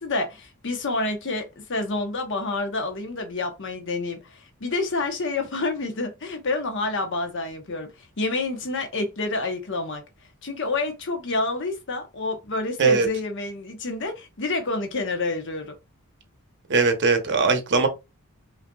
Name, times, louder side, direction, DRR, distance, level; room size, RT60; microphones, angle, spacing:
voice 1, 0.0-10.0 10.4-15.8, left 3 dB, 55° left, 0.9 m, -28 dB
voice 2, 16.7-17.9, right 4 dB, 50° right, 0.8 m, -20 dB
5.6 x 2.7 x 2.3 m
head